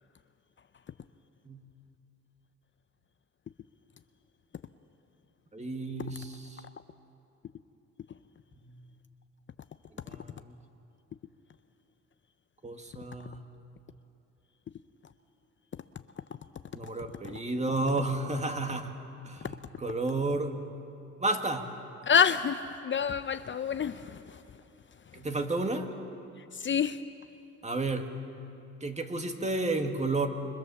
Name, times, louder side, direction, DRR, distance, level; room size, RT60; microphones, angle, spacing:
voice 1, 5.5-6.6 8.6-8.9 10.1-10.6 12.6-13.4 16.7-18.9 19.3-20.5 21.2-21.7 25.1-25.9 27.6-28.2 28.8-30.3, right 2 dB, 25° right, 2.1 m, -32 dB
voice 2, 22.1-24.2 26.6-27.0, left 7 dB, 40° left, 0.7 m, -27 dB
28.0 x 24.0 x 7.2 m
cardioid pair, 90°, 30 cm